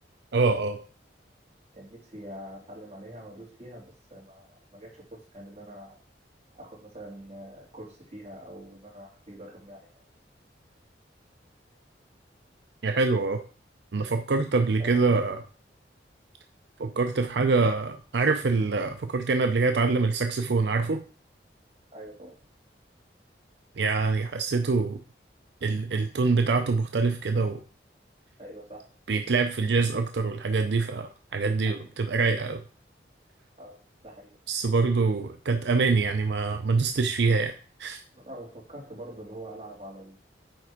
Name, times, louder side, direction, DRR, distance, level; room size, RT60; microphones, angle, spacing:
voice 1, 0.3-0.8 12.8-13.4 13.9-15.4 16.8-21.0 23.8-25.0 25.6-27.6 29.1-32.6 34.5-37.5 37.8-38.0, right 4 dB, 70° right, 7 dB, 0.5 m, -25 dB
voice 2, 1.7-6.0 6.6-10.1 14.5-15.3 21.9-22.3 28.4-28.8 31.6-31.9 33.6-33.8 34.0-34.4 38.1-40.2, right 1 dB, 35° right, -3 dB, 2.8 m, -44 dB
8.9 x 3.6 x 4.9 m, 0.41 s
head